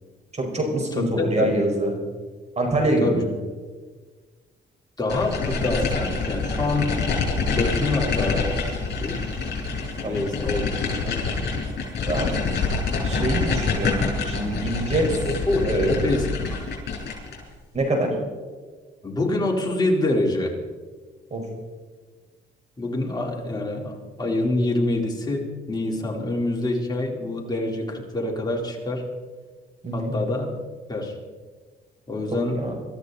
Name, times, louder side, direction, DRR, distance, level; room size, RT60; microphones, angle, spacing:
voice 1, 0.3-1.9 2.6-3.3 10.0-10.3 12.1-12.3 13.0-15.1 15.6-16.0 17.7-18.1 21.3-21.4 29.8-30.1 32.6-32.7, right 1 dB, 35° right, 1 dB, 5.2 m, -25 dB
voice 2, 1.0-1.6 3.0-3.2 5.0-6.9 7.5-8.5 9.0-9.3 10.0-10.7 11.0-11.2 15.5-15.6 15.9-16.6 19.0-20.5 22.8-29.0 29.9-30.5 30.9-31.1 32.1-32.6, left 2 dB, 20° left, -1 dB, 4.2 m, -26 dB
sound 1, 5.1-17.4, left 4 dB, 55° left, 6.6 m, -26 dB
24.0 x 14.0 x 4.2 m, 1.4 s
cardioid pair, 90°, 20 cm